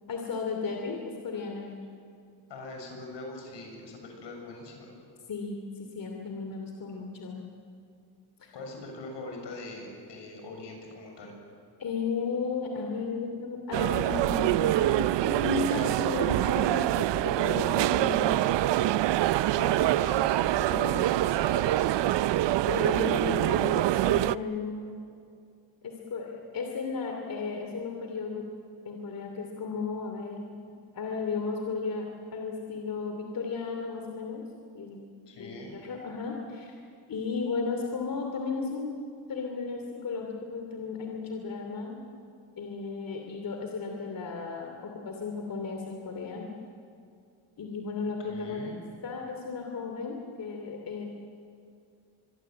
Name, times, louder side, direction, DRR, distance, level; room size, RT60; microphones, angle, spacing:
voice 1, 0.1-1.8 5.3-7.4 8.4-8.5 11.8-18.5 19.6-19.7 20.0-20.2 20.6-20.9 22.6-24.9 25.8-28.5 28.8-30.6 30.9-34.4 34.7-35.0 35.4-36.8 37.1-38.9 39.3-42.0 42.6-46.5 47.6-48.6 49.0-51.1, left 4 dB, 50° left, 2 dB, 2.8 m, -34 dB
voice 2, 2.5-4.9 8.5-11.3 19.5-22.1 35.3-35.7 48.3-48.8, left 2 dB, 80° left, 1 dB, 7.3 m, -42 dB
sound 1, 13.7-24.4, right 14 dB, 80° right, 0.6 m, -25 dB
25.5 x 22.5 x 7.8 m, 2.4 s
cardioid pair, 105°, 43 cm